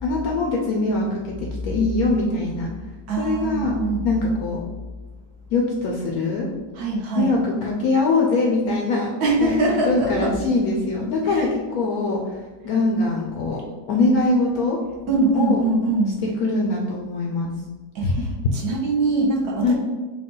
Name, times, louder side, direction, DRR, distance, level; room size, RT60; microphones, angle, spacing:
voice 1, 0.0-2.7 3.2-3.7 4.0-4.6 5.5-6.5 7.1-9.1 9.4-12.4 12.6-13.6 13.9-14.8 15.3-15.6 16.2-17.5 18.0-18.3 19.6-19.7, left 3 dB, 70° left, -1 dB, 0.9 m, -22 dB
voice 2, 3.1-4.0 6.7-7.3 9.2-10.3 11.3-11.5 15.1-16.2 17.9-18.2 18.5-19.7, right 2 dB, 65° right, -1 dB, 1.1 m, -22 dB
4.7 x 2.3 x 3.7 m, 1.3 s
omnidirectional pair, 2.0 m